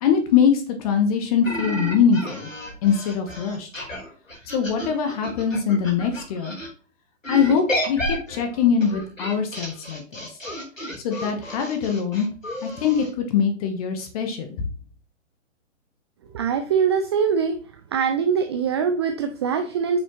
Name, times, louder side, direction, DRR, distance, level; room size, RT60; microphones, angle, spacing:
voice 1, 0.0-2.5 2.8-3.7 4.5-6.6 7.3-10.3 11.0-12.3 12.6-14.5, left 7 dB, 30° left, 6 dB, 1.1 m, -22 dB
sound 1, 1.4-6.7 7.2-13.1, equal, 85° left, 3.8 m, -32 dB
voice 2, 16.3-17.5 17.9-20.0, right 6 dB, 20° right, 6 dB, 0.5 m, -22 dB
8.6 x 6.7 x 3.0 m, 0.40 s
figure-of-eight pair, 125°, 38 cm